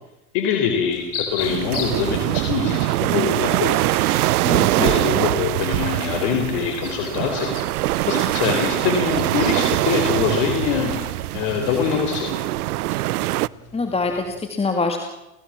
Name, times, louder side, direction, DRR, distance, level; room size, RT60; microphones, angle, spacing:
voice 1, 0.3-3.7 4.8-7.5 8.1-11.0 11.3-12.3, left 7 dB, 60° left, 3 dB, 4.2 m, -23 dB
sound 1, 0.9-14.4, left 5 dB, 90° left, 7.9 m, -39 dB
sound 2, 1.4-13.5, right 17 dB, 80° right, 0.7 m, -23 dB
voice 2, 4.4-4.9 13.7-15.0, left 3 dB, 15° left, 4 dB, 2.4 m, -24 dB
29.5 x 16.5 x 7.5 m, 0.92 s
supercardioid pair, 115°, 44 cm